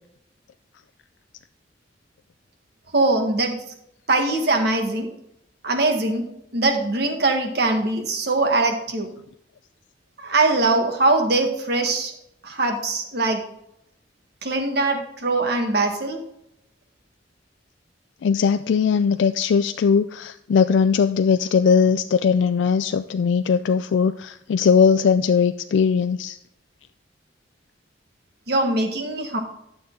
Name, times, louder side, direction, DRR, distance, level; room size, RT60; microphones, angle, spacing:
voice 1, 2.9-3.5 4.1-5.1 5.6-6.2 6.5-9.1 10.2-12.1 12.4-13.4 14.4-16.2 28.5-29.4, right 2 dB, 55° right, 3 dB, 1.6 m, -22 dB
voice 2, 18.2-26.4, left 6 dB, 70° left, 10 dB, 0.3 m, -19 dB
12.0 x 6.9 x 3.8 m, 0.78 s
head